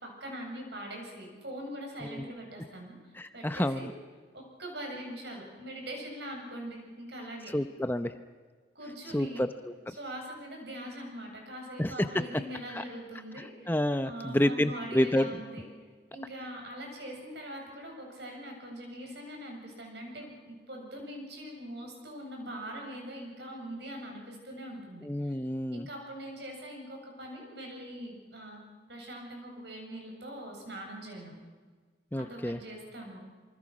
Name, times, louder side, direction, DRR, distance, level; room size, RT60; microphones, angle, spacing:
voice 1, 0.0-3.9 4.3-7.6 8.7-9.4 10.0-13.7 14.0-15.7 16.1-25.4 25.7-28.6 28.9-31.3 32.2-33.2, right 1 dB, 65° right, 1 dB, 7.8 m, -42 dB
voice 2, 3.1-3.9 7.5-8.1 9.1-9.5 11.8-11.9 12.7-12.8 13.7-15.3 25.0-25.9 32.1-32.6, left 1 dB, 10° left, 9 dB, 0.7 m, -29 dB
27.5 x 25.0 x 6.2 m, 1.4 s
head